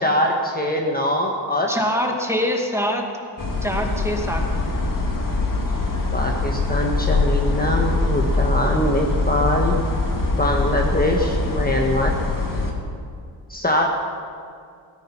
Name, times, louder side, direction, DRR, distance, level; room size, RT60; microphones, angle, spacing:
voice 1, 0.0-1.7 6.1-9.8 10.4-12.2 13.5-13.9, left 1 dB, 20° left, 0 dB, 1.5 m, -22 dB
voice 2, 1.7-3.0 3.6-4.7, equal, 5° right, 1 dB, 2.1 m, -24 dB
sound 1, 3.4-12.7, left 2 dB, 50° left, 2.3 m, -23 dB
17.0 x 14.5 x 5.8 m, 2.3 s
wide cardioid pair, 100°, 43 cm